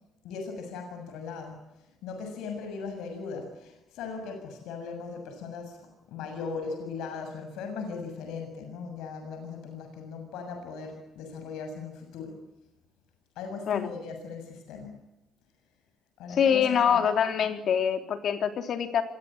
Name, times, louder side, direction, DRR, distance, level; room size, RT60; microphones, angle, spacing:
voice 1, 0.2-1.6 2.0-12.4 13.4-14.9 16.2-17.0, left 5 dB, 85° left, 5 dB, 7.1 m, -38 dB
voice 2, 16.3-19.0, left 8 dB, 50° left, 6 dB, 3.6 m, -25 dB
27.5 x 23.5 x 8.9 m, 0.92 s
cardioid pair, 140°, 0 cm